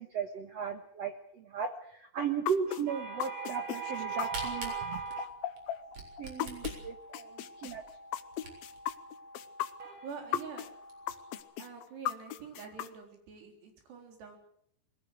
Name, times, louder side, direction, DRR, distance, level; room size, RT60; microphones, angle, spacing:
voice 1, 0.0-5.3 6.2-7.8 9.8-10.0, right 6 dB, 65° right, 6 dB, 1.6 m, -35 dB
sound 1, 2.5-6.8 7.1-10.7 11.1-12.9, left 12 dB, 75° left, 2.6 m, -36 dB
sound 2, 3.1-11.4, left 1 dB, 30° left, 3.4 m, -52 dB
Camera, 3.9-8.9 9.4-9.5 9.7-9.8 10.3-10.4 10.7-11.1, right 4 dB, 40° right, 4.9 m, -44 dB
voice 2, 10.0-10.7 11.6-14.4, right 6 dB, 85° right, 3 dB, 5.9 m, -46 dB
22.0 x 17.0 x 7.9 m, 0.69 s
omnidirectional pair, 4.7 m